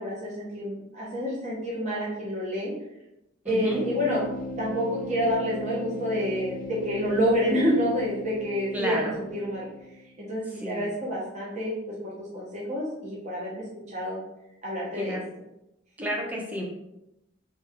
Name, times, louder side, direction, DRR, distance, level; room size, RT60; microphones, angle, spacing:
voice 1, 0.0-2.7 3.4-4.3 4.6-9.7 10.2-11.8 12.0-14.2 14.6-15.2, equal, 35° right, -5 dB, 1.0 m, -28 dB
voice 2, 3.4-3.8 8.7-9.1 10.6-10.8 15.0-15.2 16.0-16.6, equal, 10° right, -2 dB, 0.7 m, -31 dB
sound 1, 3.5-10.1, left 1 dB, 45° left, 0.6 m, -38 dB
3.4 x 3.3 x 3.6 m, 0.89 s
head